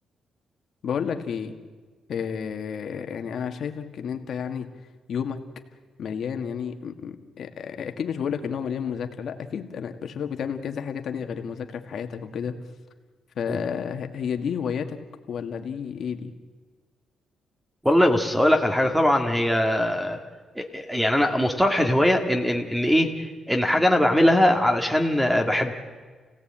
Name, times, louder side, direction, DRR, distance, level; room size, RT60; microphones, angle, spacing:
voice 1, 0.8-1.6 2.1-4.7 5.1-5.4 6.0-12.6 13.4-15.0 15.3-16.3, left 7 dB, 65° left, 6 dB, 1.9 m, -31 dB
voice 2, 17.8-20.2 20.6-25.7, left 1 dB, 5° right, 4 dB, 2.1 m, -21 dB
29.0 x 17.0 x 8.9 m, 1.5 s
cardioid pair, 100°, 0 cm